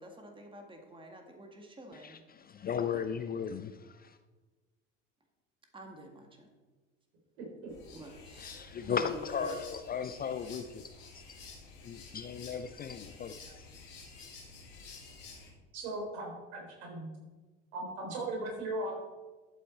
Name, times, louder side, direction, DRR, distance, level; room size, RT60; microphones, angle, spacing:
voice 1, 0.0-2.2 5.7-6.5 7.9-9.1, right 1 dB, 15° right, 3 dB, 1.9 m, -49 dB
voice 2, 1.9-4.2 8.4-10.8 11.1-11.3 11.8-13.7, left 7 dB, 25° left, 10 dB, 0.5 m, -37 dB
voice 3, 7.4-7.7 15.7-17.1 17.7-18.9, right 2 dB, 65° right, 0 dB, 3.9 m, -38 dB
sound 1, 7.7-15.5, left 4 dB, 70° left, 2.9 m, -51 dB
12.5 x 7.7 x 4.5 m, 1.3 s
figure-of-eight pair, 65°, 38 cm